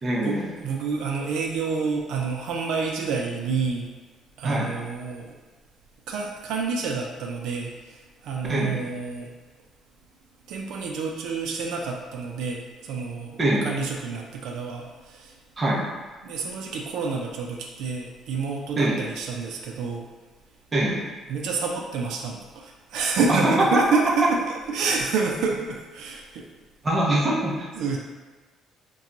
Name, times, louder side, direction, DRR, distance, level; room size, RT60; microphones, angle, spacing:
voice 1, 0.0-0.5 4.4-4.7 8.5-8.8 13.4-13.7 15.6-15.9 18.8-19.0 20.7-21.0 23.3-23.8 26.8-27.7, right 1 dB, 20° right, -4 dB, 0.6 m, -23 dB
voice 2, 0.6-3.9 4.4-5.3 6.1-9.3 10.5-15.3 16.2-20.1 21.3-24.3 24.7-26.5 27.1-27.2 27.8-28.0, right 4 dB, 80° right, 0 dB, 0.4 m, -28 dB
2.9 x 2.2 x 3.7 m, 1.3 s
cardioid pair, 160°, 0 cm